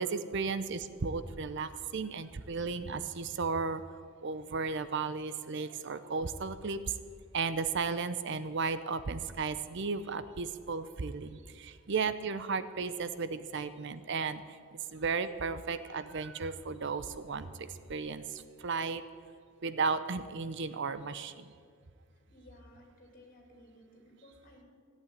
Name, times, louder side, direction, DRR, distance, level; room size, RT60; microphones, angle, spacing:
voice 1, 0.0-7.0 7.3-19.0 19.6-21.5, right 4 dB, 55° right, 13 dB, 0.6 m, -35 dB
voice 2, 22.3-24.6, left 1 dB, 40° left, 1 dB, 3.0 m, -56 dB
14.5 x 8.5 x 9.2 m, 2.1 s
head